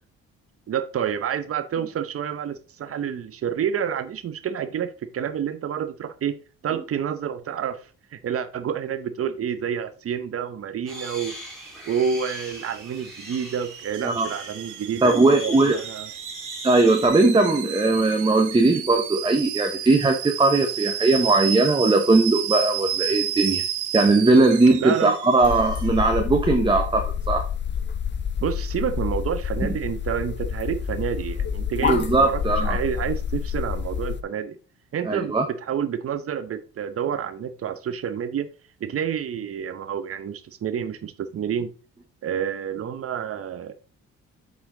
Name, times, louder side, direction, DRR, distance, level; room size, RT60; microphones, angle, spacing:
voice 1, 0.7-6.4 6.6-11.4 11.9-16.1 24.8-25.2 28.4-34.6 34.9-38.5 38.8-41.7 42.2-43.7, right 8 dB, 50° right, 12 dB, 0.8 m, -29 dB
sound 1, 10.9-17.1, left 1 dB, ahead, 2.8 m, -40 dB
Alarm / Boiling, 11.4-26.2, right 9 dB, 80° right, 1.2 m, -32 dB
voice 2, 15.0-15.7 16.6-23.6 23.9-27.5 31.8-32.8 35.1-35.4, right 2 dB, 15° right, 4 dB, 0.9 m, -19 dB
sound 2, 25.4-34.2, left 7 dB, 40° left, 0.6 m, -28 dB
7.2 x 4.3 x 3.8 m, 0.37 s
cardioid pair, 85°, 29 cm